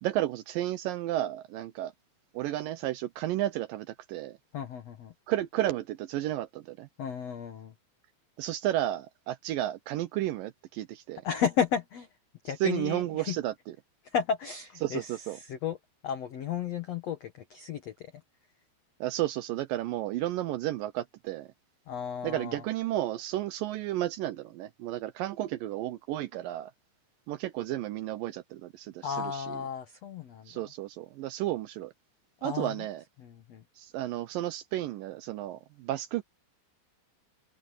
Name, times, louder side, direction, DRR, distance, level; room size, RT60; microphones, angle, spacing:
voice 1, 0.0-1.9 2.3-4.4 5.3-6.9 8.4-11.2 12.6-13.5 14.8-15.4 19.0-21.5 22.2-26.7 27.3-29.6 30.5-31.9 32.4-33.0 33.8-36.2, right 14 dB, 85° right, 1.9 m, -32 dB
voice 2, 4.5-5.1 7.0-7.7 11.2-12.1 12.4-13.4 14.0-15.8 16.0-18.1 21.9-22.7 29.0-30.7 32.4-32.9 33.2-33.6, left 7 dB, 80° left, 1.4 m, -33 dB
omnidirectional pair, 4.9 m